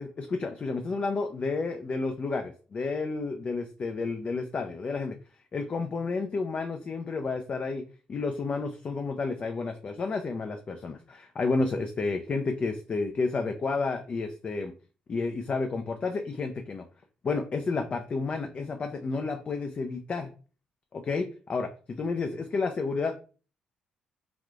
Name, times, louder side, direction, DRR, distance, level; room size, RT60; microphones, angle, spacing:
voice 1, 0.0-5.2 5.5-7.8 8.1-14.7 15.1-16.8 17.2-20.3 20.9-23.3, left 4 dB, 40° left, 5 dB, 0.4 m, -31 dB
3.4 x 2.4 x 2.4 m, 0.37 s
hypercardioid pair, 50°, 3 cm